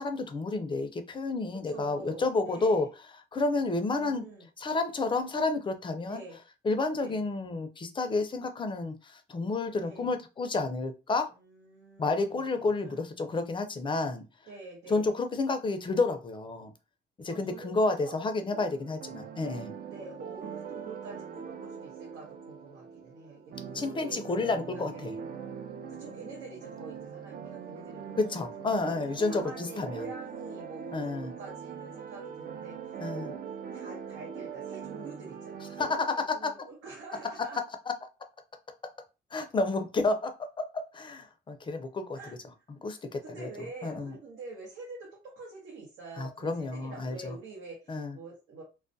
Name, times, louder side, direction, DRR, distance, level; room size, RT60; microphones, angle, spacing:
voice 1, 0.0-2.9 3.3-4.3 4.6-6.2 6.6-11.3 12.0-14.2 14.9-16.7 17.2-19.7 23.7-25.1 28.2-30.0 30.9-31.3 33.0-33.3 35.8-36.1 36.4-36.5 39.3-42.2 42.8-43.5 43.8-44.2 46.2-47.4 47.9-48.2, left 3 dB, 25° left, 0.4 m, -30 dB
voice 2, 1.7-2.9 3.6-4.5 6.0-6.4 6.9-7.2 9.7-10.2 11.3-13.0 14.5-15.1 17.3-18.2 19.9-25.0 25.9-28.2 28.8-28.9 29.3-33.4 33.7-37.6 42.2-42.3 43.0-48.6, right 3 dB, 85° right, 0.8 m, -46 dB
sound 1, 18.5-35.9, right 7 dB, 50° right, 0.4 m, -42 dB
2.3 x 2.1 x 2.5 m
cardioid pair, 90°, 20 cm